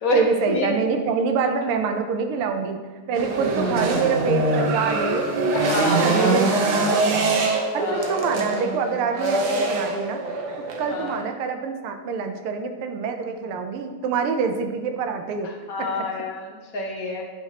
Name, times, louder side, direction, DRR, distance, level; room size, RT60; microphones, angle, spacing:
voice 1, 0.1-2.8 3.1-5.3 5.8-7.3 7.7-10.2 10.8-15.5 15.8-16.1, right 5 dB, 85° right, 6 dB, 1.6 m, -26 dB
sound 1, 3.1-11.2, right 3 dB, 65° right, 1.2 m, -23 dB
voice 2, 5.5-6.7 7.7-8.1 10.9-11.2 15.4-17.2, left 2 dB, 55° left, 0 dB, 1.1 m, -28 dB
9.5 x 4.6 x 2.8 m, 1.4 s
omnidirectional pair, 2.4 m